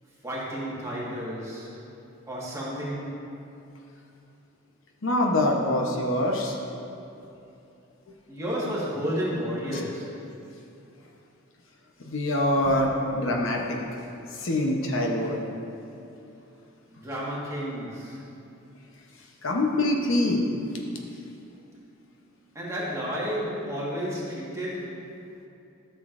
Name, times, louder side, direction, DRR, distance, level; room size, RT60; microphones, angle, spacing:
voice 1, 0.2-1.8 2.3-3.3 8.3-10.3 16.9-18.3 22.5-25.1, equal, 15° right, -7 dB, 1.5 m, -32 dB
voice 2, 5.0-6.6 12.1-13.8 14.4-15.4 19.4-20.5, left 1 dB, 65° left, 0 dB, 0.8 m, -24 dB
13.0 x 6.8 x 2.5 m, 2.8 s
head